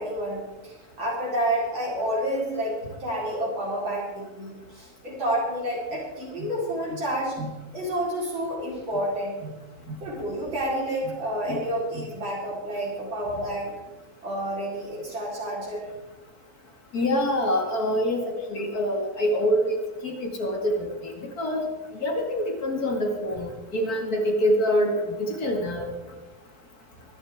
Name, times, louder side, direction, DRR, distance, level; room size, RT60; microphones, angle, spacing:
voice 1, 0.0-7.4 7.7-9.4 10.0-13.8 14.2-15.9, right 1 dB, 60° right, -6 dB, 5.1 m, -29 dB
voice 2, 16.9-21.1 21.4-21.6 22.0-25.9, equal, 45° left, 1 dB, 2.7 m, -25 dB
24.0 x 11.5 x 3.7 m, 1.2 s
omnidirectional pair, 2.4 m